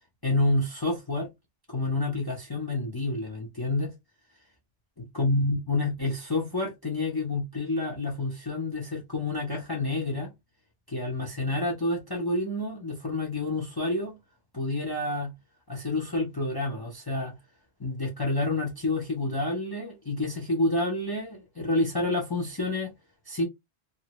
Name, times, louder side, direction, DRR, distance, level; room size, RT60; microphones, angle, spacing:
voice 1, 0.2-1.3 1.7-3.9 5.1-10.3 10.9-14.1 14.5-15.3 15.7-17.3 17.8-22.9 23.3-23.4, left 2 dB, 25° left, 0.7 m, -28 dB
2.7 x 2.5 x 3.0 m
omnidirectional pair, 1.1 m